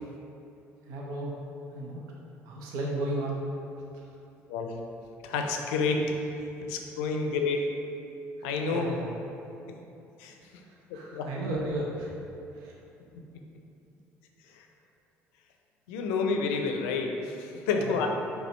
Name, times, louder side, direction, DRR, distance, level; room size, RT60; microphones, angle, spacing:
voice 1, 0.9-1.3 1.7-2.0 2.5-3.4 8.4-9.1 10.9-12.1 12.6-12.7 17.7-18.0, right 2 dB, 70° right, -2 dB, 0.6 m, -34 dB
voice 2, 5.2-6.2 6.6-7.6 8.4-9.0 9.7-9.8 10.2-10.4 11.1-11.6 14.5-14.7 15.9-18.1, left 4 dB, 80° left, 3 dB, 0.5 m, -29 dB
5.3 x 2.3 x 4.3 m, 2.8 s
hypercardioid pair, 60°, 7 cm